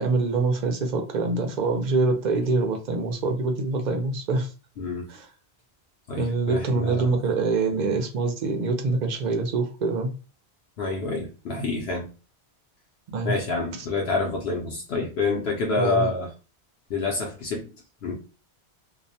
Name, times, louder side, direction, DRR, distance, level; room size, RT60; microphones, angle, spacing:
voice 1, 0.0-4.5 5.1-5.3 6.2-10.1 13.1-13.3 15.8-16.1, right 3 dB, 55° right, 4 dB, 0.5 m, -25 dB
voice 2, 6.1-7.1 10.8-12.1 13.2-16.3 16.9-17.7 18.0-18.1, left 3 dB, 70° left, -1 dB, 0.8 m, -27 dB
2.4 x 2.1 x 2.6 m, 0.34 s
omnidirectional pair, 1.1 m